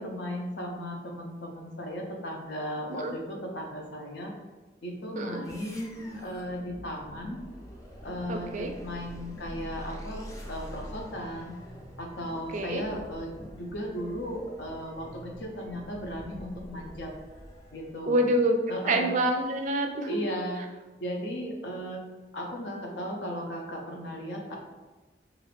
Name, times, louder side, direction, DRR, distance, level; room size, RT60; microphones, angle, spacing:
voice 1, 0.0-4.3 4.8-7.4 8.0-11.5 12.0-17.1 17.7-18.3 18.7-19.1 20.1-20.6 20.9-22.0 22.3-24.6, equal, 70° left, 1 dB, 0.6 m, -36 dB
sound 1, 5.4-18.1, equal, 20° left, 0.4 m, -45 dB
voice 2, 8.3-8.7 12.5-12.8 18.1-18.6 18.8-20.2, right 1 dB, 45° right, 4 dB, 0.3 m, -26 dB
2.4 x 2.4 x 3.3 m, 1.2 s
head